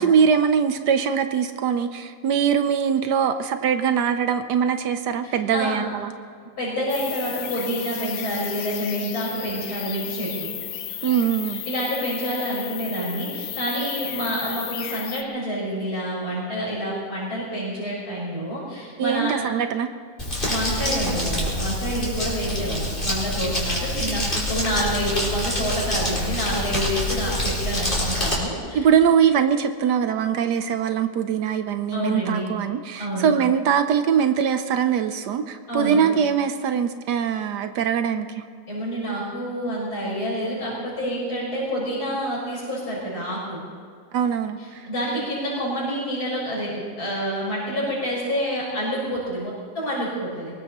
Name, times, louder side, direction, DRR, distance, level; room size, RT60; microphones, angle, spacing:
voice 1, 0.0-6.1 11.0-11.6 19.0-19.9 28.7-38.4 44.1-44.6, right 7 dB, 80° right, 8 dB, 1.4 m, -22 dB
voice 2, 5.2-5.9 6.6-10.5 11.7-19.4 20.5-28.8 31.9-32.6 33.0-33.3 35.7-36.0 38.7-43.6 44.6-50.5, equal, 70° left, -8 dB, 5.5 m, -28 dB
sound 1, 6.9-15.2, left 11 dB, 85° left, 1.3 m, -34 dB
Crumpling crinkling, 20.2-28.3, left 1 dB, 30° left, 4.8 m, -26 dB
23.0 x 20.0 x 3.0 m, 2.1 s
omnidirectional pair, 1.8 m